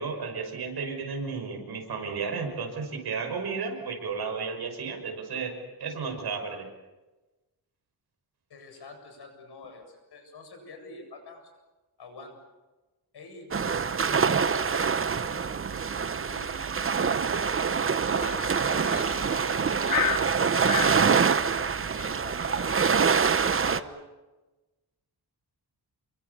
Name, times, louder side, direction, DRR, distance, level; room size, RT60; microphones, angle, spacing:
voice 1, 0.0-6.7, right 5 dB, 75° right, 4 dB, 6.3 m, -33 dB
voice 2, 8.5-11.5 12.0-12.4 13.1-14.7 16.2-20.2 20.6-24.0, left 3 dB, 80° left, 4 dB, 7.8 m, -46 dB
sound 1, 13.5-23.8, right 6 dB, 35° right, 0.9 m, -25 dB
sound 2, 18.2-21.0, left 6 dB, 55° left, 2.8 m, -32 dB
29.5 x 23.5 x 7.1 m, 1.1 s
wide cardioid pair, 140°, 39 cm